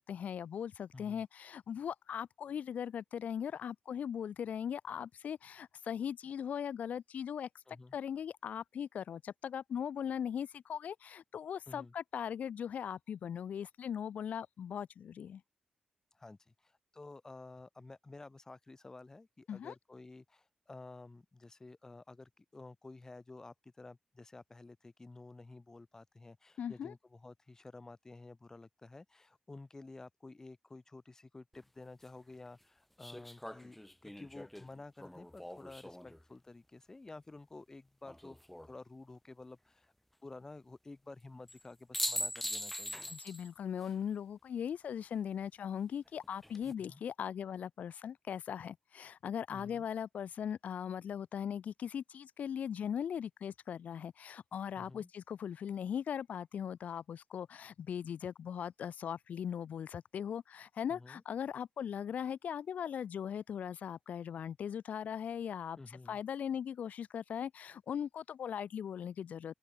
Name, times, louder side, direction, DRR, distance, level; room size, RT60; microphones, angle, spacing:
voice 1, 0.0-7.5 7.9-15.4 19.5-19.7 26.6-26.9 43.1-65.8 66.1-69.5, left 8 dB, 70° left, 0.8 m, -39 dB
voice 2, 0.9-1.2 7.7-8.0 11.7-11.9 16.1-33.8 34.0-39.9 40.2-43.1 46.8-47.0 49.5-49.9 54.8-55.1 60.9-61.2 65.8-66.2, left 3 dB, 20° left, 4.6 m, -52 dB
sound 1, 31.5-31.6 33.0-36.2 38.0-38.7 41.5-41.6 41.9-43.5 43.8-43.9 46.2-46.7, left 1 dB, 5° left, 0.7 m, -41 dB
open air
wide cardioid pair, 140°, 3 cm